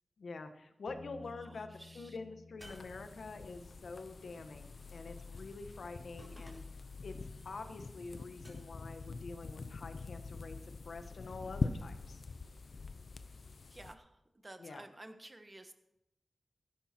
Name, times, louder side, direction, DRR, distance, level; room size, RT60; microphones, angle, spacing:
voice 1, 0.2-1.7 1.9-6.6 7.0-12.2 14.6-14.8, left 3 dB, 80° left, 7 dB, 1.4 m, -47 dB
Bass guitar, 0.9-7.1, left 3 dB, 15° left, 5.1 m, -58 dB
voice 2, 1.3-2.2 5.3-5.5 13.7-15.7, right 1 dB, 25° right, 7 dB, 1.5 m, -53 dB
sound 1, 2.6-13.9, left 4 dB, 65° left, 0.8 m, -44 dB
sound 2, 2.6-3.7 6.2-7.0 8.4-9.0 11.3-11.9, equal, 10° right, 4.3 m, -58 dB
16.5 x 12.0 x 4.5 m, 0.84 s
wide cardioid pair, 90°, 0 cm